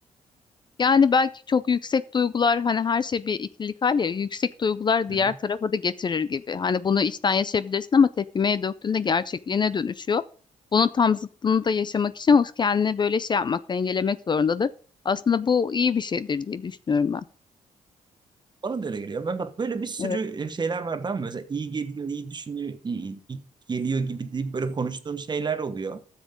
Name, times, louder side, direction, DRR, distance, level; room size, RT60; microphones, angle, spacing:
voice 1, 0.8-10.2 10.7-14.7 15.0-17.2 20.0-20.2, left 5 dB, 35° left, 0.4 m, -23 dB
voice 2, 18.6-23.4 23.7-26.0, right 5 dB, 35° right, 1.1 m, -30 dB
12.5 x 7.3 x 3.6 m
cardioid pair, 80°, 13 cm